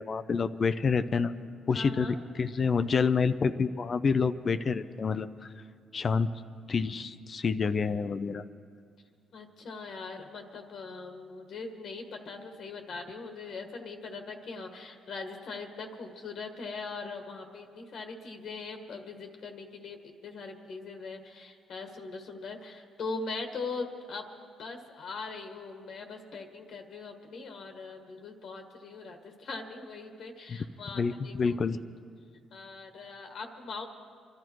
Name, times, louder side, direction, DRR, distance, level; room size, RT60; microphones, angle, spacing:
voice 1, 0.0-1.3 1.7-5.5 5.9-6.3 6.7-8.4 30.5-30.6 30.9-31.8, left 5 dB, 45° left, 13 dB, 0.6 m, -28 dB
voice 2, 1.7-2.1 9.3-24.2 24.6-31.6 32.5-33.9, left 4 dB, 65° left, 4 dB, 1.5 m, -41 dB
25.5 x 12.0 x 4.6 m, 2.2 s
cardioid pair, 90°, 0 cm